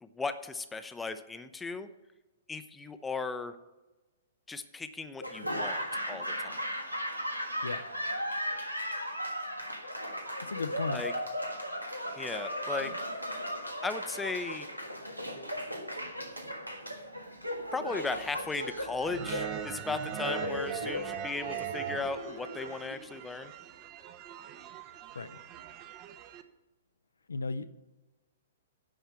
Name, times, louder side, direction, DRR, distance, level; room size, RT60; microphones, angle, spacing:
voice 1, 0.0-1.9 2.5-3.5 4.5-6.7 10.9-11.1 12.2-12.9 13.8-14.7 17.7-23.5, left 4 dB, 10° left, 10 dB, 0.6 m, -36 dB
Laughter / Applause, 5.2-23.3, equal, 90° right, 1.5 m, -37 dB
voice 2, 7.6-7.9 10.4-11.1 25.1-25.3 27.3-27.7, left 4 dB, 70° left, 12 dB, 0.5 m, -35 dB
sound 1, 19.1-26.4, right 9 dB, 30° right, 0.8 m, -41 dB
10.0 x 5.6 x 8.2 m, 1.1 s
figure-of-eight pair, 110°, 0 cm